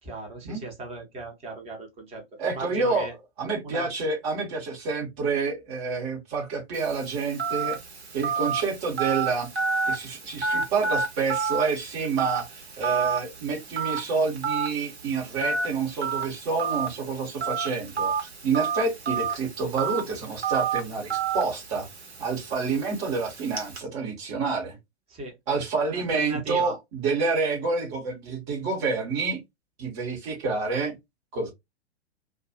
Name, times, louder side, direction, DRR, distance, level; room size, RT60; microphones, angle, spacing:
voice 1, 0.0-3.1 3.6-3.8 25.1-25.3 25.9-26.8, right 2 dB, 20° right, 1.0 m, -37 dB
voice 2, 2.4-3.1 3.4-7.8 8.1-9.5 9.9-21.9 22.2-24.8 25.5-29.4 29.8-31.0 31.3-31.5, right 4 dB, 35° right, 1.2 m, -28 dB
Telephone, 6.7-23.8, right 5 dB, 70° right, 1.1 m, -31 dB
2.5 x 2.3 x 2.7 m
figure-of-eight pair, 105°, 33 cm